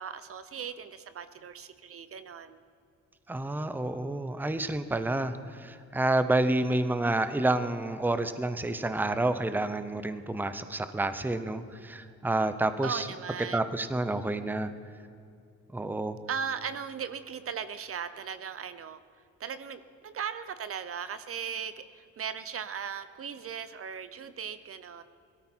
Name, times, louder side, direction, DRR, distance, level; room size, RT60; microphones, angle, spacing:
voice 1, 0.0-2.6 12.8-13.6 16.3-19.0 19.4-25.0, right 7 dB, 50° right, 12 dB, 0.7 m, -38 dB
voice 2, 3.3-13.1 13.5-14.7 15.7-16.2, right 2 dB, 5° right, 11 dB, 0.8 m, -29 dB
17.5 x 13.5 x 4.5 m, 2.5 s
cardioid pair, 90°, 30 cm